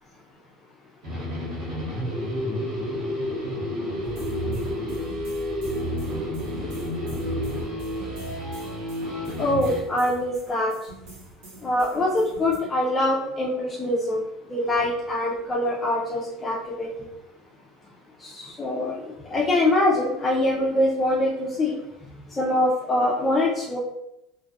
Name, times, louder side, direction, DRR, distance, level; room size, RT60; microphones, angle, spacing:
sound 1, 1.0-9.8, left 1 dB, 45° right, 0.8 m, -30 dB
sound 2, 4.0-12.6, right 3 dB, 85° right, 0.9 m, -38 dB
voice 1, 9.4-10.7 11.6-14.2 14.5-16.9 18.2-21.7 22.4-23.8, left 1 dB, 15° left, -5 dB, 0.3 m, -24 dB
2.5 x 2.2 x 2.6 m, 0.86 s
cardioid pair, 160°, 0 cm